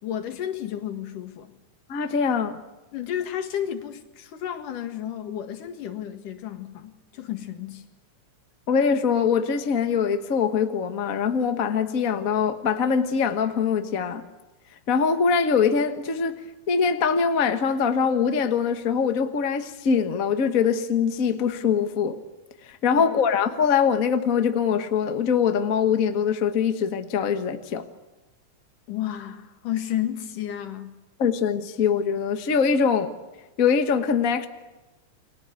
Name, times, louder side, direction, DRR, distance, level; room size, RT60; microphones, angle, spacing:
voice 1, 0.0-1.5 2.9-7.8 22.9-23.2 28.9-30.9, left 11 dB, 85° left, 3.4 m, -32 dB
voice 2, 1.9-2.6 8.7-14.2 14.9-16.4 16.7-22.2 22.7-27.8 31.2-33.1 33.6-34.5, left 6 dB, 55° left, 0.9 m, -23 dB
29.5 x 22.5 x 8.2 m
omnidirectional pair, 3.6 m